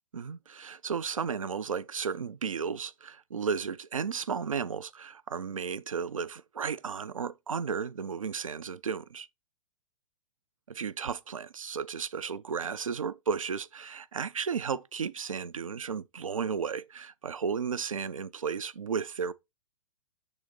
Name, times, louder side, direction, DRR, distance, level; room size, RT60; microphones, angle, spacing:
voice 1, 0.1-9.3 10.7-19.3, right 6 dB, 80° right, 0.4 m, -34 dB
6.2 x 3.9 x 3.9 m
figure-of-eight pair, 105°, 17 cm